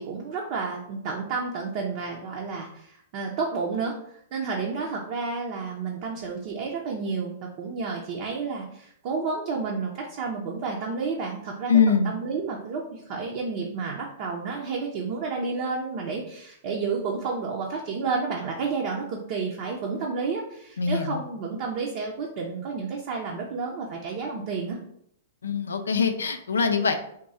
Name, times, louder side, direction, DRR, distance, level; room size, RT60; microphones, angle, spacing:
voice 1, 0.0-4.0 4.3-24.8, right 4 dB, 50° right, -1 dB, 0.7 m, -31 dB
voice 2, 11.7-12.1 20.8-21.2 25.4-26.9, left 6 dB, 90° left, 7 dB, 0.4 m, -23 dB
3.6 x 2.3 x 4.2 m, 0.71 s
hypercardioid pair, 120°, 0 cm